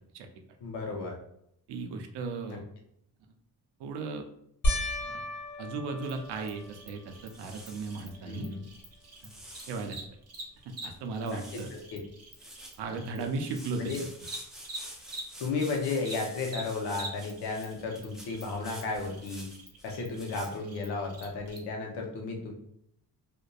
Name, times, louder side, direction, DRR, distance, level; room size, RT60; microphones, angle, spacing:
voice 1, 0.6-1.2 2.5-2.6 8.3-8.6 11.3-12.0 13.8-14.0 15.4-19.5 19.8-22.5, left 3 dB, 75° left, 1 dB, 0.7 m, -34 dB
voice 2, 1.7-2.6 3.8-4.2 5.0-5.2 5.6-8.5 9.2-9.3 9.7-10.0 10.7-11.7 12.8-13.9, right 4 dB, 75° right, 5 dB, 0.5 m, -36 dB
sound 1, 4.6-7.2 7.8-8.4 8.8-8.9 12.1-12.2, left 1 dB, 60° left, 1.0 m, -34 dB
Cricket, 6.0-15.7 16.0-21.6, right 2 dB, 40° right, 0.7 m, -46 dB
sound 2, 6.1-6.8 7.3-8.1 8.7-10.0 10.5-10.6 10.7-11.0 11.2-11.9 12.2-20.6, equal, ahead, 0.4 m, -49 dB
2.6 x 2.2 x 2.2 m, 0.74 s
cardioid pair, 75°, 40 cm